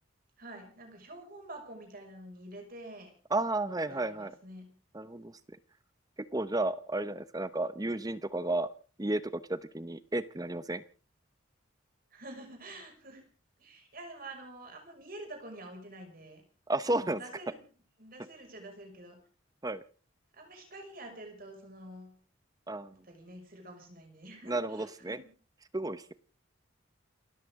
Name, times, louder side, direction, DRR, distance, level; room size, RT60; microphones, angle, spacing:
voice 1, 0.4-3.1 3.7-4.7 12.1-13.2 13.6-16.4 16.8-17.6 18.0-19.2 20.3-22.2 23.0-25.3, right 1 dB, 45° right, 3 dB, 5.8 m, -47 dB
voice 2, 3.3-4.3 4.9-5.3 6.3-8.7 9.0-10.8 16.7-17.2 19.6-19.8 22.7-22.9 24.4-25.2 25.7-26.1, right 2 dB, 20° right, 14 dB, 0.8 m, -32 dB
29.0 x 13.5 x 3.7 m, 0.39 s
head